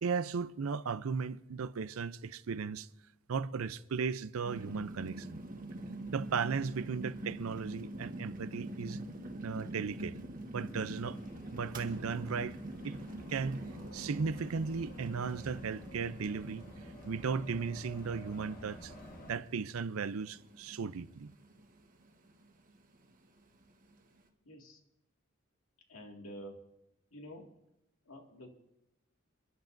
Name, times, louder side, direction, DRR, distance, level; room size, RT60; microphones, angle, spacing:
voice 1, 0.0-2.9 3.3-5.4 6.1-9.0 9.4-10.2 10.5-11.2 11.5-12.6 12.8-13.0 13.3-16.6 17.1-18.9 19.3-21.3, right 5 dB, 85° right, 0.5 m, -36 dB
sound 1, 4.5-24.3, right 1 dB, 40° right, 1.3 m, -45 dB
sound 2, 10.5-19.3, equal, 40° left, 1.3 m, -52 dB
voice 2, 24.5-24.8 25.9-26.6 27.1-27.5 28.1-28.5, equal, 90° left, 2.1 m, -48 dB
29.0 x 11.0 x 2.6 m
head